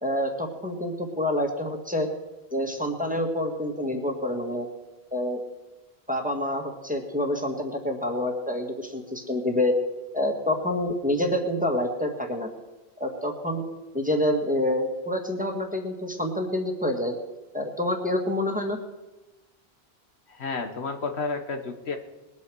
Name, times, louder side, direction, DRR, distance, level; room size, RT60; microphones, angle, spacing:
voice 1, 0.0-2.1 2.5-4.7 5.1-5.4 6.1-9.7 10.1-12.5 13.0-13.6 13.9-17.2 17.5-18.8, left 1 dB, 10° right, 2 dB, 1.7 m, -27 dB
voice 2, 20.3-22.0, left 4 dB, 90° left, 5 dB, 1.6 m, -31 dB
20.5 x 8.4 x 6.3 m, 1.1 s
omnidirectional pair, 1.1 m